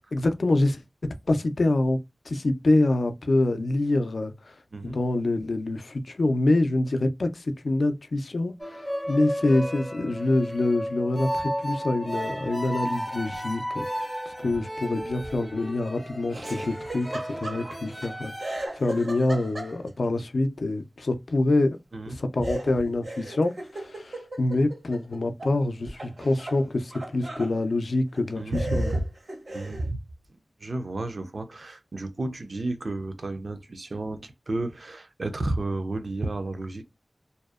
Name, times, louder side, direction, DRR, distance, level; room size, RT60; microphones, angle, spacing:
voice 1, 0.1-2.0 2.3-4.6 4.8-17.1 17.4-21.8 22.1-28.9, left 2 dB, 85° left, 0.3 m, -26 dB
sound 1, 8.6-18.7, equal, 5° right, 0.4 m, -33 dB
Laughter, 16.3-18.1 18.4-20.1 22.4-25.5 25.9-27.5 28.1-28.2 28.5-29.9, right 1 dB, 90° right, 1.1 m, -37 dB
voice 2, 28.3-29.0 29.5-30.0 30.6-36.8, right 2 dB, 70° right, 0.4 m, -31 dB
2.6 x 2.0 x 2.3 m
wide cardioid pair, 60°, 0 cm